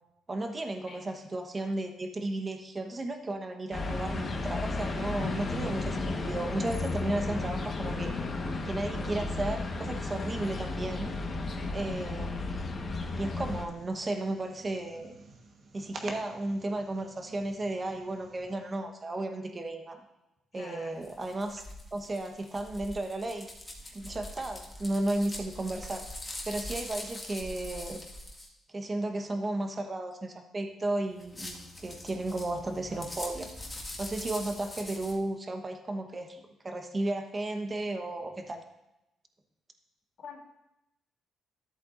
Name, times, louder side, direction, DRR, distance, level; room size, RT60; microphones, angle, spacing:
voice 1, 0.3-8.1 8.6-11.1 11.7-12.5 13.2-15.2 15.7-20.0 20.5-21.6 21.9-23.5 23.9-26.0 26.5-28.0 28.7-33.5 34.0-38.6, right 2 dB, 30° right, 5 dB, 1.1 m, -34 dB
sound 1, 3.7-13.7, left 3 dB, 40° left, 1.3 m, -33 dB
voice 2, 10.1-10.4 11.5-11.8 20.5-21.1 40.2-40.4, left 5 dB, 60° left, 1 dB, 2.4 m, -48 dB
sound 2, 13.1-18.6, right 3 dB, 55° right, 1.3 m, -49 dB
sound 3, 21.0-28.5 31.2-35.2, left 1 dB, 20° left, 1.8 m, -43 dB
13.5 x 8.1 x 2.6 m, 0.91 s
cardioid pair, 90°, 0 cm